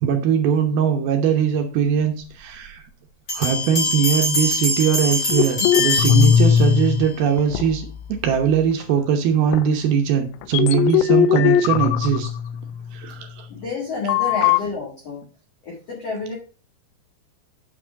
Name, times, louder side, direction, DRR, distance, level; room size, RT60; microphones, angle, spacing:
voice 1, 0.0-2.8 3.3-12.3 12.9-13.5, right 7 dB, 75° right, 4 dB, 2.3 m, -21 dB
sound 1, 3.3-7.1, left 2 dB, 25° left, 2.4 m, -24 dB
sound 2, 5.3-7.1 7.4-8.3 8.8-8.9 9.5-9.7 10.4-13.0 14.1-14.6, left 9 dB, 85° left, 3.0 m, -19 dB
voice 2, 13.5-15.2 15.6-16.3, left 3 dB, 50° left, -2 dB, 2.0 m, -29 dB
9.1 x 5.0 x 5.1 m, 0.36 s
omnidirectional pair, 5.6 m